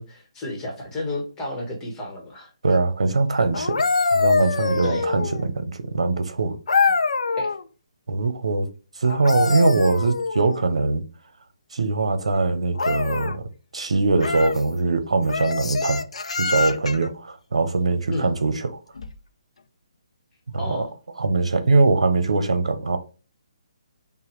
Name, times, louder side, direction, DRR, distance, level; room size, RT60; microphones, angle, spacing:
voice 1, 0.0-2.5 4.8-5.0 7.4-7.5 18.1-18.3 20.6-20.9, left 2 dB, 15° left, 1.1 m, -31 dB
voice 2, 2.6-3.8 4.1-6.6 8.1-8.7 9.0-11.0 11.7-16.0 16.4-18.8 20.5-20.9 21.2-23.0, right 3 dB, 85° right, 0.8 m, -22 dB
sound 1, 3.5-5.5 6.7-7.6 9.0-10.7 12.8-13.4 14.2-14.6 15.3-17.1 19.0-19.2, left 4 dB, 80° left, 0.5 m, -24 dB
5.6 x 2.2 x 3.1 m
hypercardioid pair, 155°, 3 cm